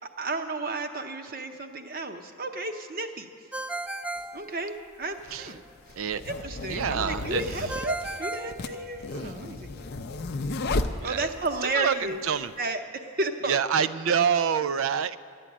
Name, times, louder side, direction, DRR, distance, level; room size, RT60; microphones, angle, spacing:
voice 1, 0.2-3.3 4.3-5.6 6.4-9.7 11.0-12.2 12.6-12.8 13.2-13.6, right 2 dB, 40° right, 6 dB, 0.8 m, -32 dB
Ringtone, 3.5-5.2 7.7-9.4, right 2 dB, 5° right, 0.4 m, -36 dB
sound 1, 4.2-4.3 5.2-11.6, left 2 dB, 45° left, 0.5 m, -33 dB
voice 2, 6.0-6.3 6.7-7.7 9.1-9.4 11.0-11.3 11.6-12.5 13.5-15.2, right 7 dB, 65° right, 14 dB, 0.4 m, -27 dB
12.5 x 9.1 x 8.6 m, 2.3 s
head